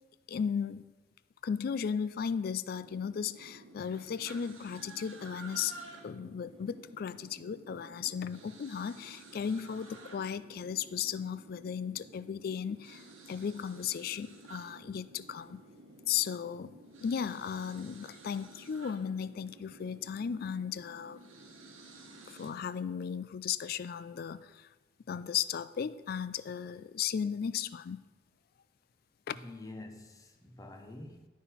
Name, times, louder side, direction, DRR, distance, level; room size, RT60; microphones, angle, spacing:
voice 1, 0.3-0.8 1.4-5.8 6.0-15.6 16.1-16.7 17.0-21.2 22.3-24.7 25.1-28.0 29.3-29.4, left 7 dB, 50° left, 0.3 m, -35 dB
sound 1, 2.7-22.5, right 2 dB, 90° right, 1.2 m, -52 dB
voice 2, 29.3-31.3, left 2 dB, 15° left, 0.7 m, -47 dB
11.5 x 4.1 x 5.6 m
head